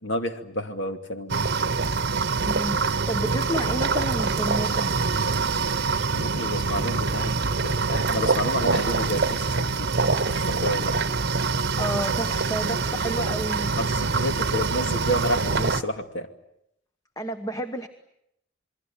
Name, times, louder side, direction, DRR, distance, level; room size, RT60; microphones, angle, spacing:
voice 1, 0.0-1.4 6.1-7.3 7.6-9.9 10.2-10.9 13.8-16.3, equal, 60° left, 6 dB, 2.6 m, -30 dB
sound 1, 1.3-15.8, right 4 dB, 50° right, 1.0 m, -25 dB
voice 2, 2.4-5.0 11.8-13.7 17.2-17.9, right 1 dB, 15° left, 8 dB, 1.2 m, -31 dB
27.5 x 22.0 x 8.9 m, 0.77 s
head